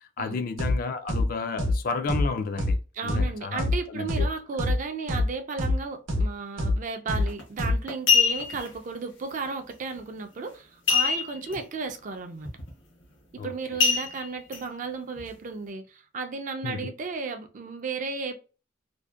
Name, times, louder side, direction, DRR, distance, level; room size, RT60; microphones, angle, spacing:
voice 1, 0.0-2.8 3.0-4.3 13.4-13.5 16.6-16.9, left 4 dB, 50° left, 0.3 m, -32 dB
sound 1, 0.6-0.8 1.1-1.3 1.6-1.8 2.1-2.3 2.6-2.8 3.1-3.2 3.6-3.8 4.1-4.3 4.6-4.8 5.1-5.3 5.6-5.8 6.1-6.3 6.6-6.8 7.1-7.2 7.6-7.8, left 2 dB, 90° right, 0.6 m, -24 dB
voice 2, 2.9-12.5 13.4-18.4, right 4 dB, 40° right, 0.4 m, -34 dB
sound 2, 7.2-7.4 7.9-8.7 10.9-11.5 11.9-12.0 12.4-12.7 13.8-14.6 15.2-15.3, left 5 dB, 70° left, 0.7 m, -23 dB
2.6 x 2.1 x 2.3 m
head